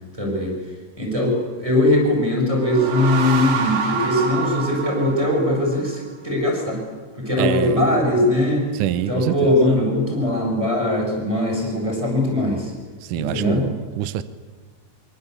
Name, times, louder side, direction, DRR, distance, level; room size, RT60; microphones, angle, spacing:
voice 1, 0.2-0.5 1.0-6.8 7.2-8.7 9.1-12.7 13.2-13.7, left 1 dB, 10° right, 7.9 m, -20 dB
sound 1, 2.4-6.0, right 5 dB, 85° right, 4.7 m, -27 dB
voice 2, 7.4-7.8 8.7-9.5 13.1-14.2, right 12 dB, 70° right, 2.2 m, -25 dB
25.5 x 25.0 x 8.4 m
omnidirectional pair, 4.2 m